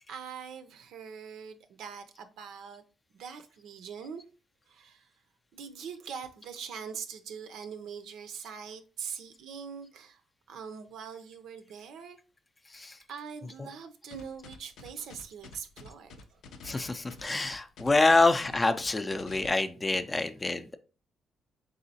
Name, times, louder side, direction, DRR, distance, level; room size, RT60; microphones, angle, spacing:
voice 1, 0.1-2.8 3.1-4.2 4.7-5.1 5.5-10.2 10.5-12.2 13.1-16.4 17.3-17.4 18.0-18.1 20.1-20.2, right 7 dB, 80° right, 0.5 m, -43 dB
sound 1, 14.1-19.5, left 4 dB, 80° left, 0.5 m, -48 dB
voice 2, 16.6-20.8, left 3 dB, 20° left, 0.4 m, -26 dB
4.1 x 3.7 x 2.7 m
cardioid pair, 90°, 0 cm